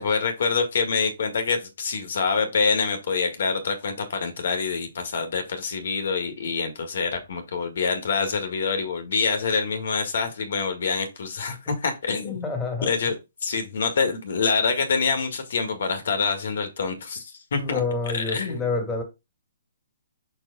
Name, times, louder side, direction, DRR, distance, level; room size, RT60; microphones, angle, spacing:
voice 1, 0.0-12.5 12.8-17.8 18.1-18.6, left 5 dB, 65° left, 1.8 m, -26 dB
voice 2, 12.2-12.9 17.6-19.0, left 4 dB, 10° left, 2.4 m, -28 dB
6.0 x 4.6 x 4.0 m
hypercardioid pair, 145°, 0 cm